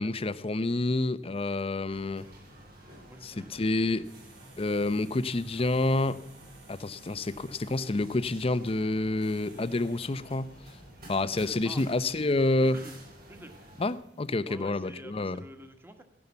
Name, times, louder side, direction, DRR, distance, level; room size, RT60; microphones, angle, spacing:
voice 1, 0.0-2.3 3.2-4.1 4.6-6.2 6.7-10.5 11.1-12.8 13.8-15.4, left 2 dB, 30° left, 0.6 m, -28 dB
sound 1, 1.9-13.9, right 1 dB, 55° right, 6.0 m, -51 dB
voice 2, 3.1-3.6 11.6-11.8 12.6-13.0 13.3-13.6 14.5-16.0, right 1 dB, 10° right, 1.5 m, -48 dB
sound 2, 4.0-14.4, right 3 dB, 75° right, 4.6 m, -59 dB
16.5 x 10.5 x 7.0 m
head